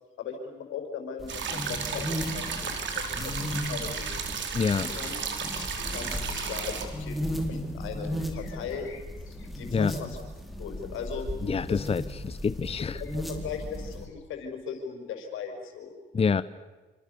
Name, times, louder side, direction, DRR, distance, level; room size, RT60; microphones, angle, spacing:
voice 1, 0.2-2.7 3.2-4.3 4.8-5.1 5.4-10.2 10.6-11.3 11.7-11.8 12.8-15.9, left 6 dB, 85° left, 4 dB, 6.0 m, -38 dB
sound 1, 1.2-14.1, equal, ahead, 4.8 m, -36 dB
sound 2, 1.3-6.8, right 6 dB, 70° right, 4.2 m, -34 dB
voice 2, 4.5-4.9 9.7-9.9 11.4-13.0 16.1-16.4, left 5 dB, 30° left, 15 dB, 0.8 m, -26 dB
27.5 x 26.5 x 7.0 m, 1.3 s
cardioid pair, 90°, 20 cm